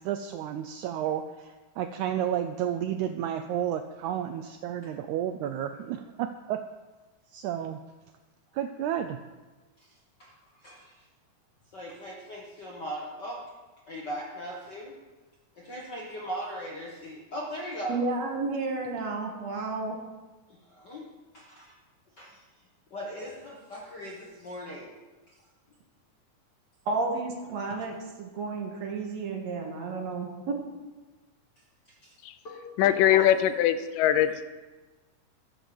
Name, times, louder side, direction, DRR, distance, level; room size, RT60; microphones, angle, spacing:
voice 1, 0.0-6.6 7.3-7.8 8.5-9.2, right 10 dB, 80° right, 6 dB, 1.7 m, -31 dB
voice 2, 10.6-10.9 11.7-13.4 13.9-14.9 15.5-18.0 20.5-21.1 21.3-21.7 22.2-22.4 22.9-24.9 32.0-32.1 32.4-33.3, equal, 50° left, -3 dB, 1.3 m, -39 dB
voice 3, 17.9-20.0 26.9-30.6, right 3 dB, 60° right, 1 dB, 2.4 m, -32 dB
voice 4, 32.8-34.4, left 11 dB, 80° left, 11 dB, 2.2 m, -22 dB
14.0 x 6.2 x 6.9 m, 1.2 s
omnidirectional pair, 3.9 m